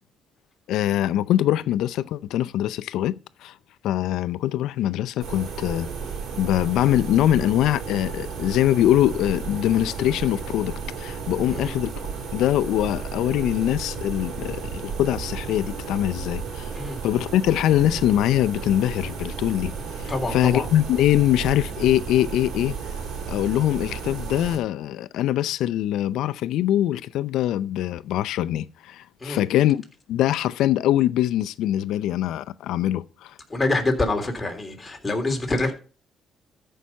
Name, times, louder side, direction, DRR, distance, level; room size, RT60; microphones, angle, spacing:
voice 1, 0.7-3.5 3.8-5.9 6.4-11.9 12.3-16.7 17.0-19.7 20.0-22.8 23.3-29.8 30.1-33.3, left 12 dB, 85° left, 0.5 m, -23 dB
sound 1, 5.2-24.6, right 5 dB, 75° right, 4.0 m, -33 dB
voice 2, 20.1-20.7 29.2-29.4 33.5-35.7, left 2 dB, 20° left, 3.4 m, -26 dB
13.5 x 5.6 x 5.8 m
cardioid pair, 90°, 0 cm